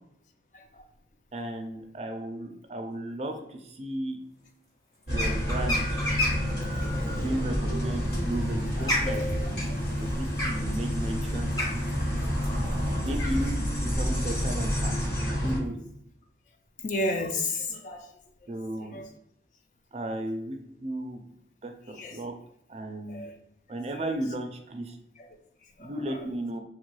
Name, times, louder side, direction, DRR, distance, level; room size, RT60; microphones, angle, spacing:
voice 1, 1.3-4.2 5.1-5.9 7.1-9.2 9.9-11.7 13.0-14.9 15.4-15.8 18.5-19.0 19.9-21.2 21.6-22.3 22.7-23.2 23.7-25.0 25.8-26.6, right 1 dB, 35° right, 4 dB, 0.4 m, -34 dB
sound 1, 5.1-15.6, equal, 65° left, 1.3 m, -29 dB
sound 2, 5.1-6.5 7.9-13.5, left 1 dB, 20° left, 0.7 m, -31 dB
voice 2, 6.8-7.6 8.8-9.5 12.5-12.6 13.0-13.1 16.8-18.1 18.8-19.1 21.9-22.2 23.1-23.3 23.9-24.1 25.2-25.3 25.8-26.2, left 2 dB, 45° left, 5 dB, 0.4 m, -34 dB
3.0 x 2.2 x 3.0 m, 0.78 s
head